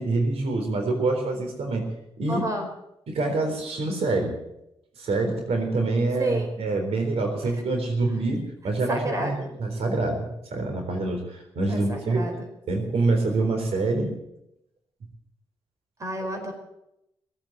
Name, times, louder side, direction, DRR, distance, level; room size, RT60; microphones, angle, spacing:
voice 1, 0.0-1.9 2.2-2.4 3.1-4.3 5.0-10.3 10.5-12.3 12.7-14.1, right 2 dB, 80° right, 3 dB, 3.9 m, -26 dB
voice 2, 2.3-2.7 6.2-6.5 7.4-7.5 8.9-9.6 11.7-12.5 16.0-16.5, right 1 dB, 30° right, 4 dB, 4.5 m, -30 dB
19.0 x 8.8 x 8.8 m, 0.82 s
cardioid pair, 100°, 10 cm